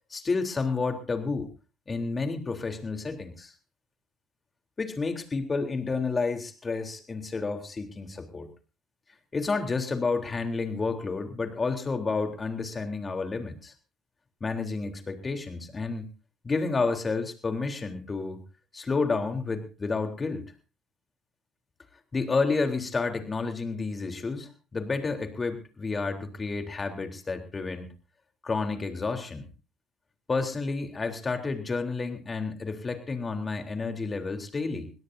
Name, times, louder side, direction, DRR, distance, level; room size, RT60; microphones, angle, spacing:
voice 1, 0.1-1.5 1.9-3.5 4.8-8.5 9.3-13.7 14.4-16.1 16.4-18.4 18.7-20.4 22.1-27.9 28.4-29.5 30.3-34.9, left 4 dB, 30° left, 5 dB, 3.6 m, -30 dB
23.0 x 17.5 x 2.7 m, 0.32 s
hypercardioid pair, 65°, 0 cm